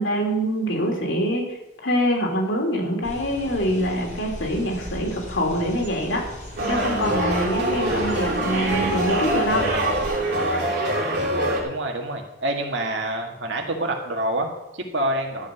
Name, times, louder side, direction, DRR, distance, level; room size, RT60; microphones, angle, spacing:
voice 1, 0.0-6.2 6.7-9.7, equal, 85° left, 0 dB, 2.9 m, -24 dB
sound 1, 3.0-10.1, equal, 40° left, 3.6 m, -37 dB
sound 2, 6.6-11.6, right 1 dB, 55° right, 3.0 m, -24 dB
voice 2, 11.6-15.5, right 1 dB, 75° right, 2 dB, 1.8 m, -27 dB
12.0 x 5.3 x 8.0 m, 0.89 s
head